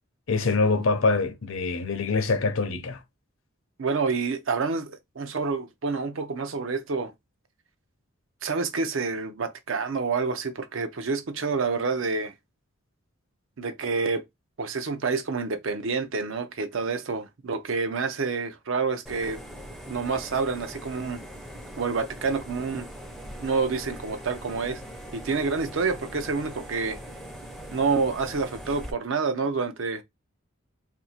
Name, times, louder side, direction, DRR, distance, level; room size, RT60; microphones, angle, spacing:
voice 1, 0.3-3.0, left 3 dB, 65° left, 0.6 m, -24 dB
voice 2, 3.8-7.1 8.4-12.3 13.6-14.3 14.6-19.4 19.9-21.2 21.8-22.9 23.4-24.8 25.1-27.0 27.7-30.0, right 4 dB, 60° right, 0.5 m, -28 dB
sound 1, 19.1-28.9, equal, ahead, 0.5 m, -41 dB
2.7 x 2.6 x 4.2 m
head